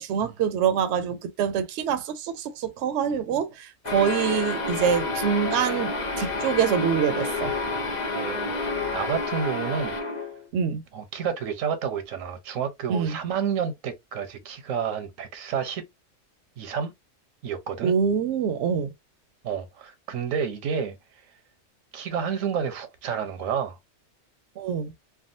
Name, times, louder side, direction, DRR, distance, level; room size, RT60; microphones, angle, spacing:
voice 1, 0.0-7.5 10.5-10.8 12.9-13.2 17.8-18.9 24.6-24.9, right 7 dB, 65° right, 0.8 m, -25 dB
sound 1, 3.8-10.5, left 3 dB, 45° left, 0.7 m, -29 dB
voice 2, 8.1-8.7 8.9-9.9 10.2-10.3 10.9-15.8 16.6-16.9 17.4-17.9 19.4-21.0 21.9-23.8, right 7 dB, 85° right, 1.1 m, -30 dB
3.5 x 2.2 x 2.5 m
omnidirectional pair, 1.3 m